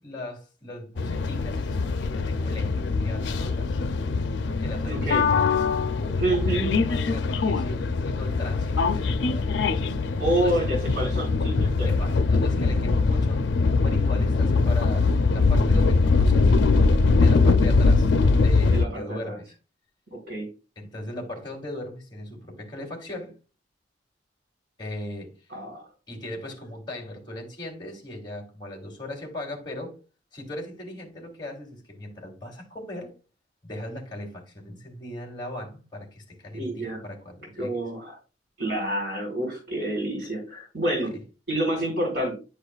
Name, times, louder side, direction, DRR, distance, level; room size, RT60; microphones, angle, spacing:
voice 1, 0.0-3.7 4.5-5.5 6.0-10.0 10.4-10.6 11.8-13.4 13.8-16.5 17.2-19.5 20.8-23.3 24.8-25.3 26.1-30.0 30.3-33.1 33.6-37.8 41.0-41.2, left 1 dB, 25° left, 2.9 m, -38 dB
sound 1, 1.0-18.9, left 4 dB, 90° left, 0.5 m, -22 dB
voice 2, 4.9-5.3 6.2-6.7 10.2-11.9 18.7-19.4 20.1-20.5 25.5-25.8 36.5-37.0 37.6-38.2 38.6-41.1 41.5-42.4, right 1 dB, 65° right, 3.6 m, -28 dB
10.5 x 4.8 x 2.3 m
head